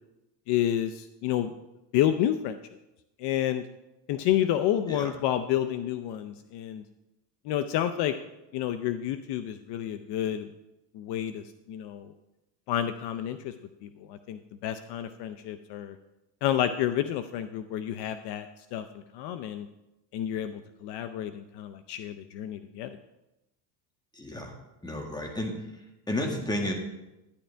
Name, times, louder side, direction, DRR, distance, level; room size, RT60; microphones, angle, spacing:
voice 1, 0.5-1.5 1.9-2.6 3.2-3.6 4.1-6.8 7.4-8.1 8.5-10.5 10.9-12.1 12.7-13.5 13.8-16.0 16.4-18.8 19.1-19.7 20.1-23.0, left 11 dB, 60° left, 10 dB, 0.7 m, -29 dB
voice 2, 24.1-24.6 24.8-25.5 26.1-26.7, left 1 dB, 10° left, 2 dB, 1.7 m, -31 dB
11.5 x 10.0 x 3.4 m, 0.96 s
cardioid pair, 130°, 47 cm